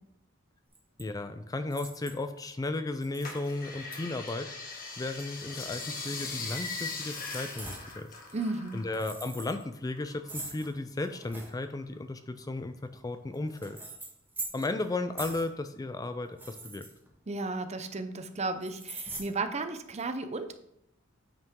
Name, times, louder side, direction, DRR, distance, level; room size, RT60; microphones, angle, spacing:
sound 1, 0.7-1.0 1.7-2.3 3.0-3.5 3.9-4.0 5.0-6.1 6.5-6.7 7.6-7.9 8.8-9.6 10.3-11.5 12.6-14.8 15.2-15.5 16.3-17.5 18.6-19.2, right 2 dB, 10° right, 1.5 m, -43 dB
voice 1, 1.0-4.5 5.0-8.1 8.7-13.8 14.5-16.9, left 2 dB, 20° left, 10 dB, 0.4 m, -35 dB
sound 2, 3.2-9.1 9.4-10.7 11.1-11.9 12.4-12.5, left 4 dB, 45° left, 1.5 m, -40 dB
voice 2, 8.3-8.8 17.3-20.5, right 3 dB, 35° right, 9 dB, 0.6 m, -34 dB
9.1 x 5.5 x 3.7 m, 0.79 s
head